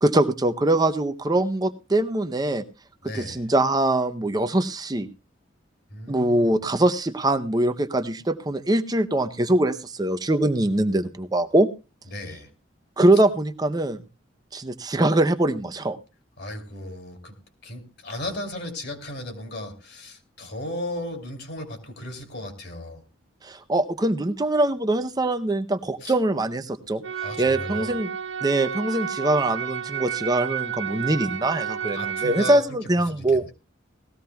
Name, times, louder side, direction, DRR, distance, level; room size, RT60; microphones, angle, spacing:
voice 1, 0.0-2.6 3.1-5.1 6.1-11.7 13.0-14.0 14.5-16.0 23.4-27.0 27.4-28.1 28.4-33.4, right 1 dB, 20° right, 10 dB, 0.6 m, -23 dB
voice 2, 3.0-3.4 5.9-6.5 12.1-12.5 16.4-17.3 17.6-23.0 26.0-26.1 27.2-27.9 31.8-32.6 33.1-33.5, left 1 dB, 60° left, 6 dB, 2.6 m, -35 dB
sound 1, 27.0-32.6, right 8 dB, 80° right, 0.8 m, -31 dB
18.5 x 14.5 x 2.3 m, 0.29 s
head